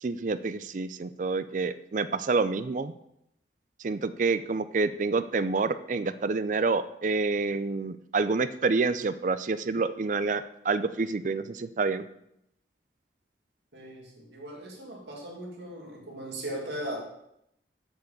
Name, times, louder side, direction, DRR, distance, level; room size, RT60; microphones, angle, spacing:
voice 1, 0.0-2.9 3.8-12.0, right 4 dB, 45° right, 14 dB, 0.4 m, -28 dB
voice 2, 13.7-17.0, right 1 dB, 80° right, -2 dB, 2.5 m, -38 dB
7.8 x 4.7 x 6.9 m, 0.79 s
head